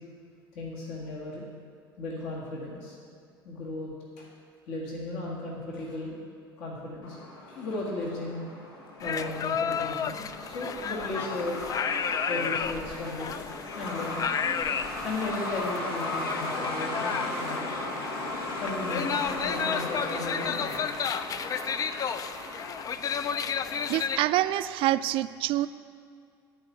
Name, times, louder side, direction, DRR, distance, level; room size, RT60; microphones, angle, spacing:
voice 1, 0.5-1.4 2.0-3.0 3.4-3.9 4.2-4.3 4.7-6.2 6.6-7.2 7.5-8.4 9.0-11.6 12.3-13.4 13.8-18.1 18.6-20.8 21.5-21.6 22.3-22.4, left 2 dB, 55° left, -4 dB, 1.9 m, -36 dB
Truck, 7.0-24.5, left 2 dB, 75° left, 1.4 m, -37 dB
sound 1, 9.0-24.2, left 7 dB, 30° left, 0.4 m, -32 dB
voice 2, 23.9-25.7, right 15 dB, 45° right, 14 dB, 0.4 m, -26 dB
10.5 x 4.9 x 8.3 m, 2.2 s
figure-of-eight pair, 65°, 12 cm